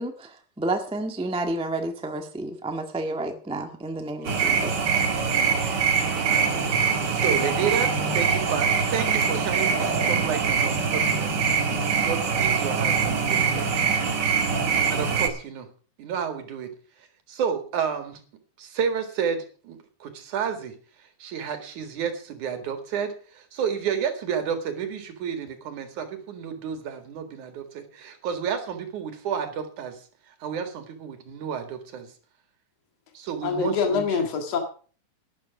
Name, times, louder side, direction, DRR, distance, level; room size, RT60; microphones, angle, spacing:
voice 1, 0.0-4.7, right 2 dB, 5° right, 5 dB, 0.4 m, -30 dB
voice 2, 4.1-4.7 5.1-5.6 6.2-11.6 12.0-15.7 16.0-16.8 17.3-18.2 18.6-20.8 21.2-32.1 33.2-34.2, right 7 dB, 75° right, 7 dB, 3.4 m, -31 dB
sound 1, 4.2-15.3, right 5 dB, 40° right, 1.8 m, -23 dB
voice 3, 33.4-34.6, left 5 dB, 55° left, 5 dB, 2.8 m, -25 dB
12.0 x 10.5 x 6.0 m, 0.41 s
omnidirectional pair, 3.5 m